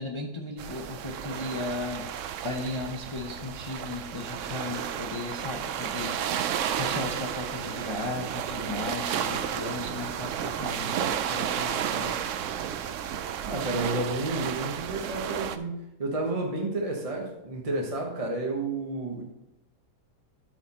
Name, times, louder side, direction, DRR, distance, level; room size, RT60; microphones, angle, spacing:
voice 1, 0.0-2.0 2.4-12.3, left 2 dB, 45° left, 1 dB, 0.3 m, -36 dB
sound 1, 0.6-15.6, right 9 dB, 75° right, 0.7 m, -32 dB
voice 2, 13.4-19.3, right 2 dB, 25° right, 0 dB, 0.9 m, -31 dB
12.5 x 4.7 x 4.2 m, 0.90 s
omnidirectional pair, 1.8 m